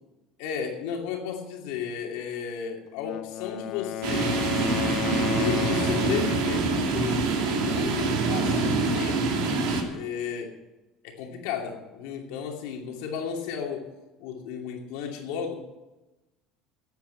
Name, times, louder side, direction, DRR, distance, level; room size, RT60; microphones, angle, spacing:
voice 1, 0.4-4.4 5.4-9.4 9.9-10.6 11.0-13.9 14.2-15.6, left 7 dB, 85° left, 2 dB, 2.6 m, -34 dB
Wind instrument woodwind instrument, 2.9-6.7, left 14 dB, 55° left, 0.6 m, -33 dB
sound 1, 4.0-9.8, right 3 dB, 80° right, 2.9 m, -25 dB
12.0 x 8.2 x 8.5 m, 1.1 s
cardioid pair, 135°, 0 cm